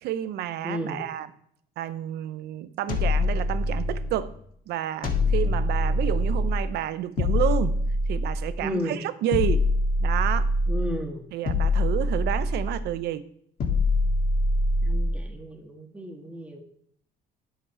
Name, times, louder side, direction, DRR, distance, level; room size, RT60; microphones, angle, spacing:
voice 1, 0.0-1.3 1.8-4.3 4.7-7.8 8.1-9.7 10.0-10.5 11.3-13.3, right 12 dB, 75° right, 0.7 m, -30 dB
voice 2, 0.6-1.1 8.6-9.0 10.7-11.3 14.8-16.6, equal, 10° right, 1.7 m, -33 dB
sound 1, 2.9-4.2 5.0-6.7 7.2-8.6 9.3-10.9 11.5-12.9 13.6-15.2, left 2 dB, 55° left, 1.9 m, -24 dB
9.9 x 7.1 x 4.4 m
cardioid pair, 110°, 17 cm